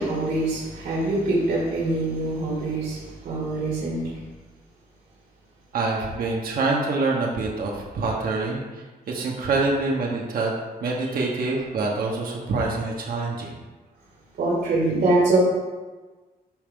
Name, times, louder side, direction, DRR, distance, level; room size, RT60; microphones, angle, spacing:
voice 1, 0.0-4.2 14.4-15.4, right 2 dB, 80° right, -5 dB, 2.6 m, -24 dB
voice 2, 5.7-10.5 10.8-13.6, right 3 dB, 65° right, -2 dB, 1.3 m, -26 dB
12.0 x 4.6 x 3.8 m, 1.3 s
wide cardioid pair, 160°, 16 cm